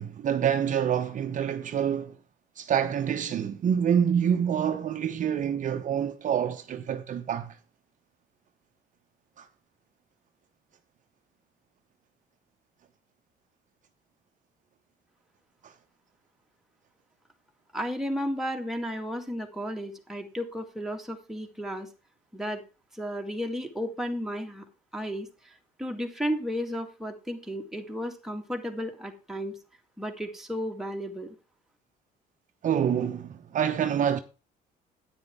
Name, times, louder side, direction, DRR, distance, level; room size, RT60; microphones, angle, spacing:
voice 1, 0.0-2.1 2.6-7.6 9.4-9.5 15.6-15.7 32.6-34.2, right 8 dB, 50° right, 0.9 m, -27 dB
voice 2, 17.7-21.9 22.3-22.6 22.9-24.7 24.9-25.5 25.8-29.6 30.0-31.4, equal, ahead, 2.2 m, -33 dB
9.6 x 9.2 x 3.6 m
cardioid pair, 110°, 17 cm